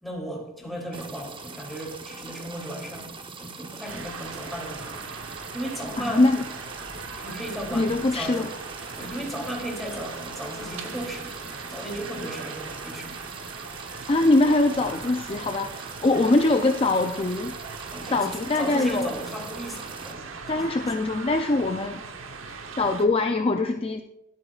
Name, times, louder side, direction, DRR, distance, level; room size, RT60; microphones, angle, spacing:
voice 1, 0.0-6.2 7.2-8.5 8.9-11.3 11.6-13.2 16.1-16.4 17.9-18.2 18.6-20.6, equal, ahead, -2 dB, 3.0 m, -36 dB
sound 1, 0.9-20.1, right 4 dB, 25° right, 0.9 m, -42 dB
sound 2, 3.8-23.1, right 4 dB, 75° right, 1.0 m, -40 dB
voice 2, 6.0-6.4 7.7-8.5 14.1-17.6 18.1-19.1 20.5-22.0 22.8-24.0, left 2 dB, 30° left, 5 dB, 0.5 m, -23 dB
22.0 x 8.7 x 2.4 m, 0.89 s
head